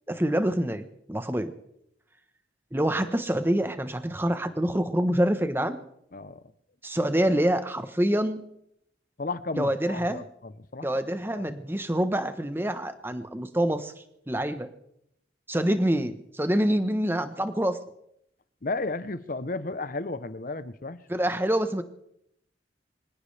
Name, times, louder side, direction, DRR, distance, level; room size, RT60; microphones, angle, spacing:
voice 1, 0.1-1.5 2.7-5.8 6.8-8.4 9.6-10.2 10.8-14.7 15.5-17.8 21.1-21.8, right 1 dB, 10° right, 1.0 m, -26 dB
voice 2, 9.2-10.9 11.3-11.4 18.6-21.0, left 3 dB, 45° left, 0.7 m, -33 dB
25.0 x 16.5 x 3.4 m
head